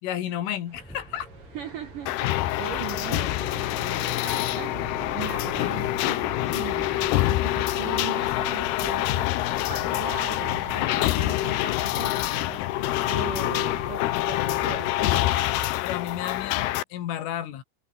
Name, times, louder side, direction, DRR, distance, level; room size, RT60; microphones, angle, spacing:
voice 1, 0.0-1.3 15.8-17.6, left 11 dB, 75° left, 4.8 m, -32 dB
sound 1, 0.7-10.7, equal, ahead, 5.4 m, -44 dB
sound 2, 0.7-15.7, right 3 dB, 25° right, 5.6 m, -43 dB
voice 2, 1.5-7.0 7.3-15.5, right 10 dB, 75° right, 1.9 m, -39 dB
sound 3, 2.1-16.8, left 17 dB, 90° left, 2.3 m, -26 dB
omnidirectional pair, 5.9 m